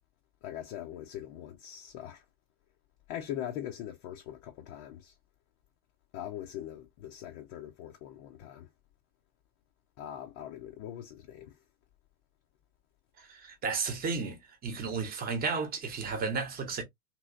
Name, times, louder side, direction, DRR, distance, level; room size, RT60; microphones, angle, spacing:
voice 1, 0.4-2.2 3.1-5.1 6.1-8.7 10.0-11.5, left 11 dB, 30° left, 0.5 m, -41 dB
voice 2, 13.2-16.8, right 5 dB, 20° right, 1.0 m, -33 dB
3.0 x 3.0 x 2.4 m
figure-of-eight pair, 90°, 43 cm